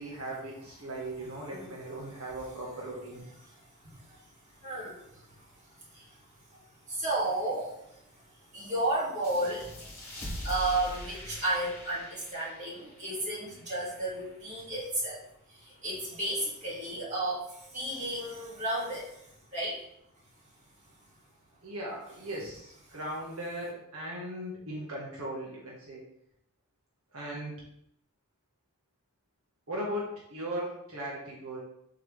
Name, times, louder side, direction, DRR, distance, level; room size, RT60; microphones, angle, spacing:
voice 1, 0.0-3.2 21.6-26.0 27.1-27.5 29.7-31.6, right 1 dB, 75° right, -4 dB, 1.9 m, -38 dB
voice 2, 3.8-4.2 4.6-5.4 5.8-6.2 6.5-6.6 6.9-8.0 8.5-9.7 10.4-15.2 15.5-19.8, right 1 dB, 30° right, -7 dB, 2.9 m, -33 dB
sound 1, 9.2-14.5, left 1 dB, 15° left, 2.4 m, -43 dB
7.9 x 4.8 x 3.7 m, 0.76 s
head